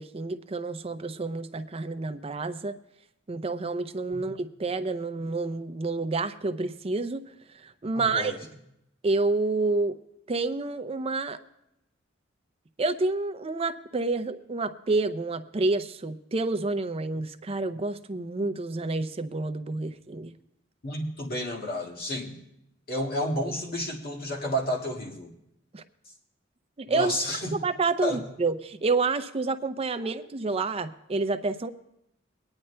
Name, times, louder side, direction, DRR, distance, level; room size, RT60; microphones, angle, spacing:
voice 1, 0.0-2.8 3.3-7.2 7.6-8.3 9.0-10.0 10.3-11.4 12.8-20.3 25.7-25.8 26.8-27.1 27.5-31.7, right 3 dB, 30° right, 10 dB, 0.5 m, -29 dB
voice 2, 7.9-8.3 20.8-22.4 22.9-25.3 26.9-27.6 28.0-28.2 29.9-30.1, equal, 50° left, -1 dB, 1.8 m, -31 dB
23.5 x 9.6 x 2.2 m, 0.82 s
head